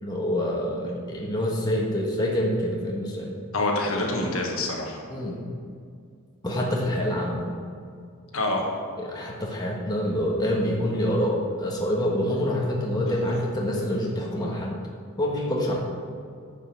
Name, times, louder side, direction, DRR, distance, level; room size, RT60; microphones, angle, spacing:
voice 1, 0.0-3.4 5.1-5.4 6.4-7.5 9.0-14.7 15.2-15.8, equal, 20° left, -3 dB, 1.3 m, -26 dB
voice 2, 3.5-5.0 8.3-8.7 13.1-13.3, left 2 dB, 70° left, 0 dB, 1.5 m, -26 dB
10.0 x 5.4 x 6.6 m, 2.2 s
head